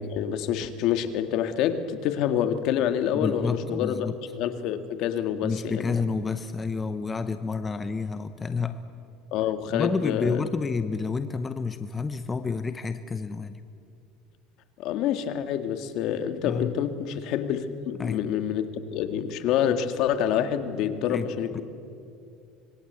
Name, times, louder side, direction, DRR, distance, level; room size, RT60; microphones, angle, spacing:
voice 1, 0.0-5.8 9.3-10.4 14.8-21.6, left 9 dB, 60° left, 8 dB, 1.9 m, -27 dB
voice 2, 3.1-4.2 5.4-8.8 9.7-13.6 16.4-16.8 18.0-18.2 21.1-21.3 21.5-21.6, left 4 dB, 20° left, 10 dB, 0.9 m, -29 dB
26.0 x 22.0 x 8.3 m, 2.4 s
supercardioid pair, 125°, 0 cm